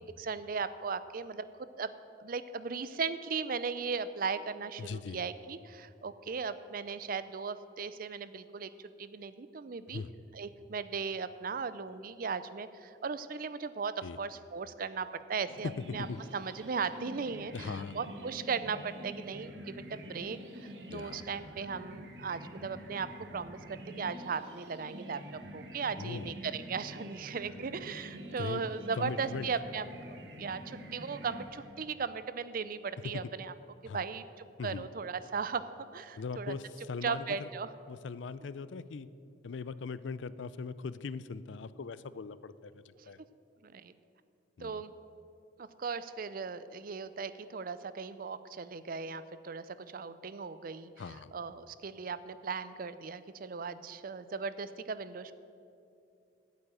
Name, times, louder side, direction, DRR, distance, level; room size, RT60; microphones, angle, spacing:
voice 1, 0.2-1.9 2.2-8.7 9.0-10.0 10.3-16.1 16.3-23.6 24.0-25.2 25.5-33.5 33.8-36.6 37.0-37.7 43.0-43.1 43.6-43.9 44.6-44.9 45.6-55.3, right 5 dB, 50° right, 14 dB, 0.5 m, -37 dB
voice 2, 4.8-5.2 9.9-10.1 14.0-14.2 15.6-16.2 17.5-18.0 20.9-21.2 26.0-26.3 28.4-28.6 28.9-29.5 33.9-34.0 34.6-34.9 36.2-37.5 37.9-39.1 39.4-43.2 44.6-44.8 51.0-51.3, left 4 dB, 75° left, 16 dB, 0.4 m, -40 dB
sound 1, 15.5-32.1, equal, 65° right, 1.3 m, -47 dB
8.9 x 8.4 x 9.1 m, 2.6 s
head